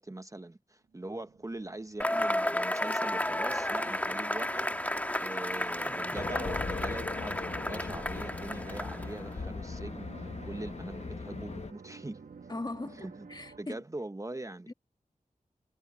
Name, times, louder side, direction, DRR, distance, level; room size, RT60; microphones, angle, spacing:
voice 1, 0.0-12.2 12.9-13.3 13.6-14.7, right 2 dB, 20° right, 0.9 m, -42 dB
sound 1, 0.8-13.6, right 5 dB, 85° right, 1.3 m, -52 dB
Cheering / Applause / Crowd, 2.0-9.2, left 1 dB, 10° left, 1.4 m, -32 dB
Race car auto racing, 6.2-11.7, left 4 dB, 50° left, 0.9 m, -39 dB
voice 2, 12.5-13.8 14.7-14.8, left 2 dB, 30° left, 1.6 m, -39 dB
wide cardioid pair, 75°, 14 cm